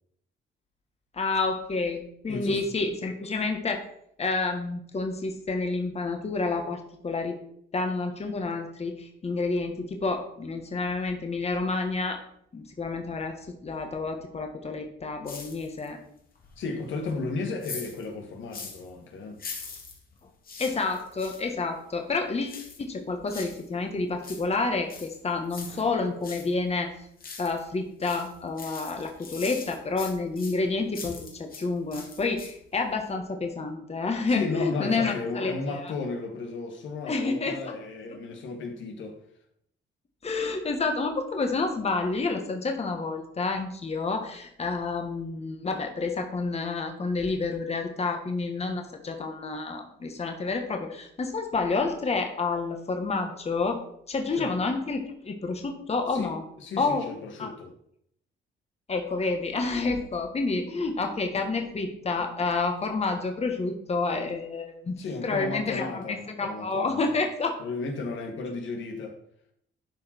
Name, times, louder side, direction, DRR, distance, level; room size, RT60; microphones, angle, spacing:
voice 1, 1.1-3.8 4.2-7.4 7.7-12.2 12.5-16.0 20.6-26.9 27.4-35.5 37.1-37.7 40.2-53.8 54.1-56.4 56.8-57.0 57.4-57.5 58.9-64.9 65.2-67.5, left 3 dB, 30° left, 1.4 m, -29 dB
voice 2, 2.3-2.6 16.6-19.4 34.3-39.2 54.3-54.5 56.1-57.7 65.0-67.2 67.6-69.2, left 3 dB, 70° left, 1.6 m, -34 dB
sound 1, 15.3-16.0 16.3-18.9 19.3-21.5 22.5-23.7 24.0-26.5 26.9-27.7 28.0-31.7 31.9-32.7 33.0-33.1, left 4 dB, 45° left, 2.2 m, -42 dB
11.5 x 4.9 x 4.5 m
cardioid pair, 90°, 20 cm